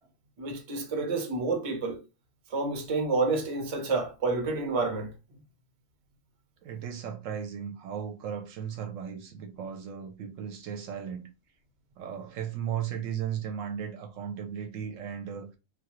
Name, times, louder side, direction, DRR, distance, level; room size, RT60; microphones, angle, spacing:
voice 1, 0.4-2.0 2.5-5.1, right 3 dB, 35° right, 0.6 m, -29 dB
voice 2, 6.6-11.3 12.0-15.6, right 8 dB, 70° right, 0.9 m, -36 dB
2.9 x 2.3 x 3.0 m
omnidirectional pair, 1.4 m